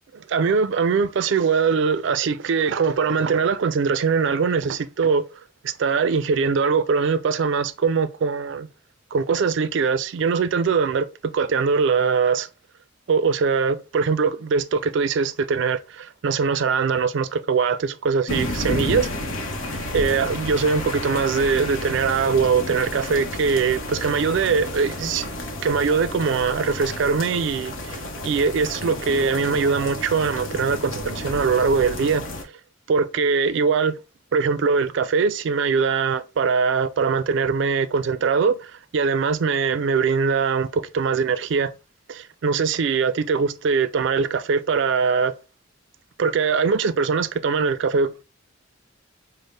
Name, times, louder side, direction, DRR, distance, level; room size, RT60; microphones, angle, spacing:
voice 1, 0.1-5.2 5.6-8.7 9.1-11.1 11.3-12.5 13.1-19.1 19.7-25.3 25.6-32.2 32.9-33.9 34.3-41.7 42.1-45.3 46.2-48.2, right 5 dB, 65° right, 0.4 m, -22 dB
sound 1, 18.3-32.4, left 1 dB, 80° left, 0.8 m, -31 dB
5.2 x 2.1 x 3.2 m
head